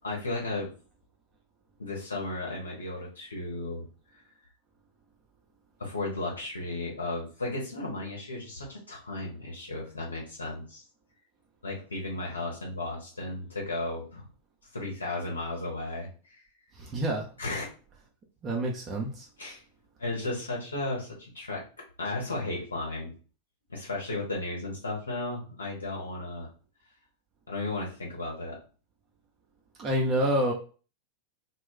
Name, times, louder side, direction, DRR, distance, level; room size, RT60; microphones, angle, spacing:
voice 1, 0.0-0.7 1.8-3.9 5.8-10.8 11.6-14.2 14.7-16.1 17.4-17.7 19.4-19.6 20.0-21.6 22.0-23.1 23.7-26.5 27.5-28.6, left 2 dB, 75° left, -2 dB, 0.9 m, -34 dB
voice 2, 16.8-17.2 18.4-19.3 29.8-30.5, right 1 dB, 30° right, 0 dB, 0.6 m, -27 dB
2.3 x 2.1 x 3.8 m, 0.37 s
figure-of-eight pair, 90°, 0 cm